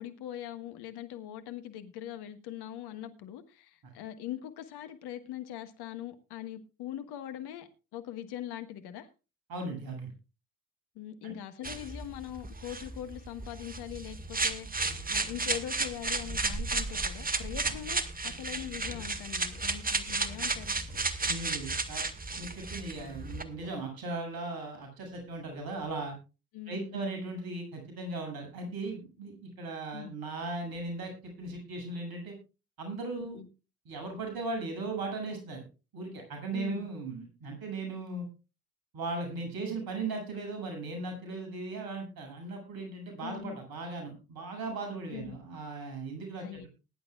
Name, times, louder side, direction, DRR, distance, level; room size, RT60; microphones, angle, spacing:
voice 1, 0.0-9.1 10.9-20.8 26.5-27.0 29.9-30.1 33.2-33.5 36.5-36.9 43.2-43.6 45.1-45.4 46.4-46.7, left 11 dB, 60° left, 1.6 m, -42 dB
voice 2, 9.5-10.1 11.2-11.3 17.7-17.8 21.2-22.0 22.4-26.1 26.7-32.3 32.8-33.4 33.9-35.6 35.9-38.3 38.9-46.7, right 3 dB, 55° right, 7.6 m, -38 dB
sound 1, 11.6-23.4, right 3 dB, 20° right, 1.9 m, -33 dB
sound 2, 13.8-23.8, left 1 dB, 90° left, 2.8 m, -50 dB
20.5 x 11.0 x 2.4 m
figure-of-eight pair, 50°, 43 cm